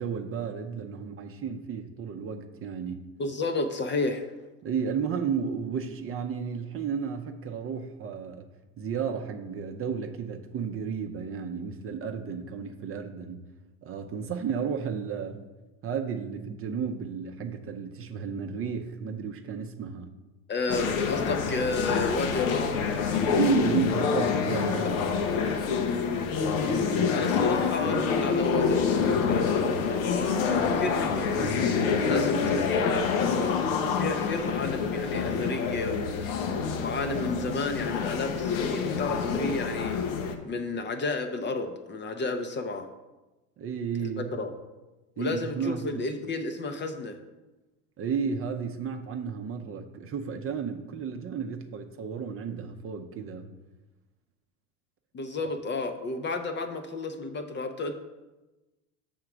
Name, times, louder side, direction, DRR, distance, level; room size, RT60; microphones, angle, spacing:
voice 1, 0.0-3.1 4.6-8.5 8.8-13.5 13.8-15.4 15.8-20.1 23.3-25.4 43.6-44.3 45.2-46.1 48.0-53.5, right 6 dB, 30° right, 5 dB, 0.6 m, -33 dB
voice 2, 3.2-4.3 20.5-22.8 24.8-25.2 27.1-33.6 33.9-36.3 36.7-40.0 40.4-42.9 44.0-44.5 45.2-47.2 55.1-57.9, left 3 dB, 25° left, 7 dB, 0.6 m, -32 dB
sound 1, 20.7-40.3, left 5 dB, 75° left, 0.9 m, -27 dB
6.6 x 3.7 x 6.0 m, 1.1 s
hypercardioid pair, 90°, 42 cm